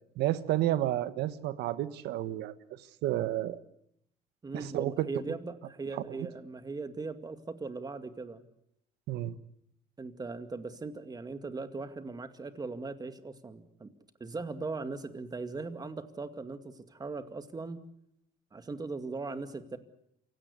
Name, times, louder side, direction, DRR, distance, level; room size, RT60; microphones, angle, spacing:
voice 1, 0.2-2.5 3.0-3.6 4.5-5.1 6.1-6.3 9.1-9.4, right 14 dB, 85° right, 13 dB, 1.4 m, -31 dB
voice 2, 4.4-8.4 10.0-13.9 14.2-17.8 18.5-19.8, right 3 dB, 25° right, 9 dB, 2.2 m, -39 dB
28.5 x 17.0 x 8.2 m, 0.75 s
cardioid pair, 110°, 17 cm